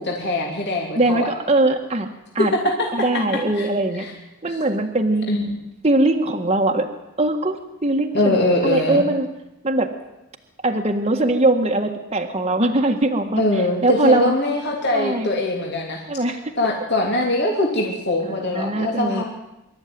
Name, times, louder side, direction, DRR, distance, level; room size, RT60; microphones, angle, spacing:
voice 1, 0.0-1.3 2.8-2.9 3.5-3.7 4.0-4.1 5.3-5.6 8.1-9.0 13.4-16.0 16.6-19.2, left 2 dB, 50° left, -1 dB, 3.1 m, -22 dB
voice 2, 1.0-2.1 2.3-4.0 4.4-5.3 5.8-6.9 7.2-7.6 7.8-8.4 8.6-9.3 9.6-9.9 10.6-14.3 14.9-15.3 16.1-16.4 18.3-19.2, right 2 dB, 30° right, 2 dB, 1.6 m, -21 dB
24.5 x 13.0 x 9.5 m, 0.95 s
head